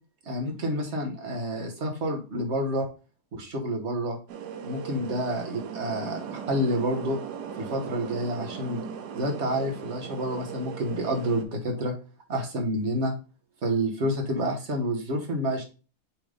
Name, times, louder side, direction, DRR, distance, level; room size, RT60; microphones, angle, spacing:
voice 1, 0.2-2.9 3.3-4.2 4.6-7.2 7.6-8.8 9.1-11.9 12.3-13.1 13.6-15.6, equal, 45° right, 3 dB, 1.7 m, -29 dB
sound 1, 4.3-11.5, right 7 dB, 90° right, 1.5 m, -38 dB
7.6 x 3.6 x 3.8 m, 0.33 s
omnidirectional pair, 1.7 m